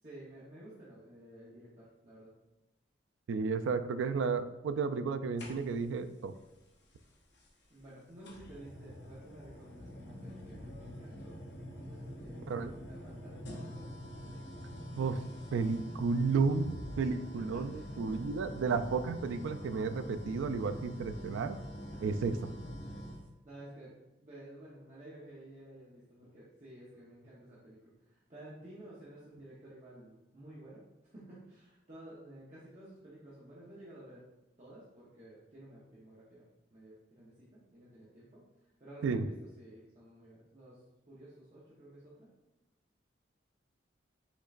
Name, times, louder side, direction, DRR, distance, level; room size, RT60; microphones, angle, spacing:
voice 1, 0.0-2.3 7.7-11.4 11.8-12.5 12.9-13.9 17.0-18.0 21.9-22.1 23.4-34.2 34.6-36.4 36.7-40.8 41.1-42.3, right 1 dB, 35° right, -8 dB, 0.9 m, -53 dB
voice 2, 3.3-6.3 12.5-12.7 15.0-15.2 15.5-21.6 22.0-22.4 39.0-39.3, right 4 dB, 85° right, 11 dB, 0.3 m, -32 dB
sound 1, 5.4-6.0 7.4-7.5 8.2-23.3, equal, 65° left, 0.7 m, -45 dB
5.2 x 3.8 x 2.4 m, 1.0 s
head